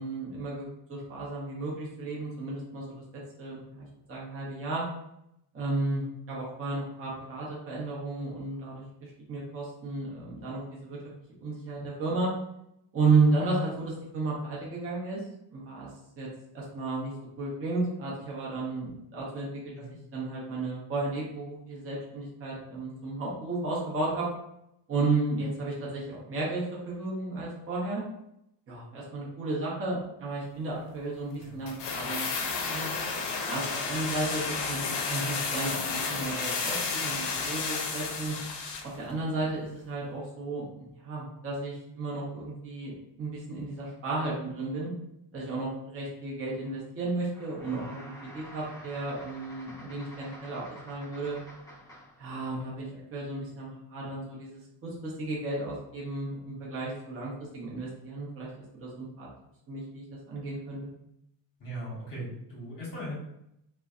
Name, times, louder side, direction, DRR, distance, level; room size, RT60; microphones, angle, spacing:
voice 1, 0.0-2.9 3.4-4.8 5.5-11.0 11.4-12.3 12.9-15.2 15.5-15.9 16.2-16.3 16.5-19.5 20.1-24.2 24.9-28.0 28.7-32.9 33.5-38.3 38.8-40.7 40.9-42.9 43.2-44.9 45.3-51.4 52.2-58.5 58.8-59.3 59.7-60.9, right 3 dB, 30° right, -5 dB, 0.7 m, -33 dB
sound 1, 31.7-39.0 39.2-39.3, left 4 dB, 60° left, 0.6 m, -32 dB
sound 2, 47.3-52.3, equal, 5° left, 0.6 m, -48 dB
voice 2, 61.6-63.1, equal, 40° left, -6 dB, 0.9 m, -39 dB
2.5 x 2.1 x 2.4 m, 0.80 s
cardioid pair, 125°, 49 cm